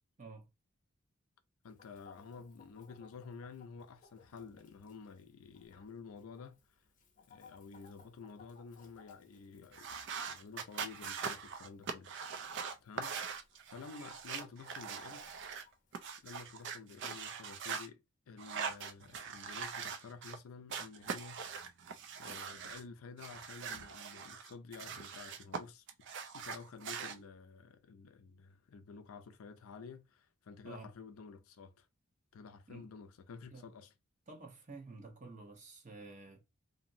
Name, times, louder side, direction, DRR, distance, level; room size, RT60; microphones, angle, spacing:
voice 1, 1.6-6.6 7.3-12.1 12.8-13.1 13.7-15.3 16.2-21.6 22.2-25.8 26.3-31.9 32.3-33.9, left 5 dB, 75° left, 0.4 m, -51 dB
Chicken rooster, 1.7-17.2, left 5 dB, 40° left, 0.7 m, -65 dB
sound 1, 9.7-15.6 15.9-17.9 18.4-20.4 20.7-22.8 23.2-25.6 25.9-27.2, right 6 dB, 55° right, 0.4 m, -42 dB
voice 2, 34.3-36.4, right 3 dB, 35° right, 0.8 m, -50 dB
2.9 x 2.6 x 2.5 m
head